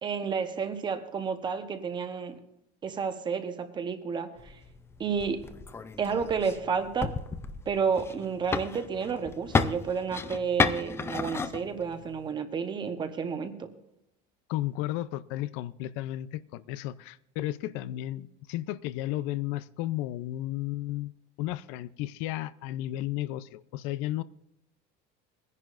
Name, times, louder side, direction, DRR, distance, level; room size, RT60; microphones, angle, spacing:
voice 1, 0.0-2.3 2.8-4.6 5.0-5.5 6.0-7.2 7.7-13.7, right 6 dB, 25° right, 9 dB, 1.0 m, -31 dB
sound 1, 4.4-12.3, left 4 dB, 10° left, 0.4 m, -33 dB
voice 2, 14.5-21.1 21.4-24.2, left 15 dB, 80° left, 16 dB, 0.6 m, -33 dB
21.5 x 11.0 x 2.5 m, 0.80 s
cardioid pair, 170°, 20 cm